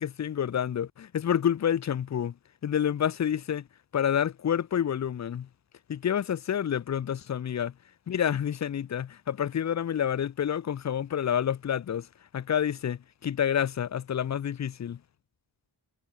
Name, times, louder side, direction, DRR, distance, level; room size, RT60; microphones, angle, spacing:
voice 1, 0.0-2.3 2.6-3.6 3.9-5.5 5.9-7.7 8.1-12.1 12.3-15.0, left 9 dB, 40° left, 0.4 m, -28 dB
wide cardioid pair, 75°, 46 cm